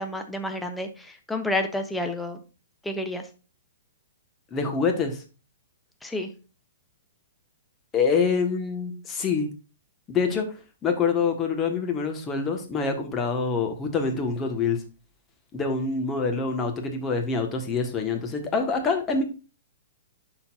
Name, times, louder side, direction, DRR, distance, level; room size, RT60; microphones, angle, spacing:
voice 1, 0.0-2.4 2.8-3.2 6.0-6.3, left 1 dB, 5° left, 5 dB, 0.8 m, -30 dB
voice 2, 4.5-5.2 7.9-9.5 10.1-10.5 10.8-14.8 15.5-19.2, left 5 dB, 20° left, 4 dB, 1.5 m, -25 dB
11.0 x 4.0 x 2.6 m, 0.33 s
hypercardioid pair, 125°, 0 cm